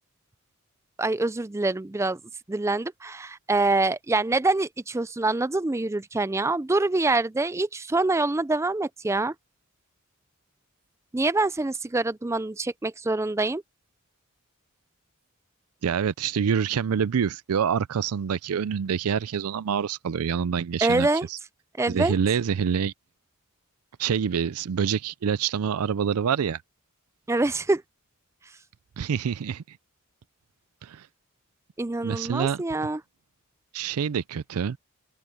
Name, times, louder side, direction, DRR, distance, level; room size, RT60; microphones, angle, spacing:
voice 1, 1.0-2.2 2.5-9.3 11.1-13.6 20.8-21.3 21.8-22.1 27.3-27.8 31.8-33.0, right 2 dB, 10° right, 0.4 m, -25 dB
voice 2, 15.8-21.4 21.9-22.9 24.0-26.6 29.0-29.8 30.8-31.1 32.0-32.6 33.7-34.8, right 7 dB, 80° right, 0.4 m, -26 dB
open air
head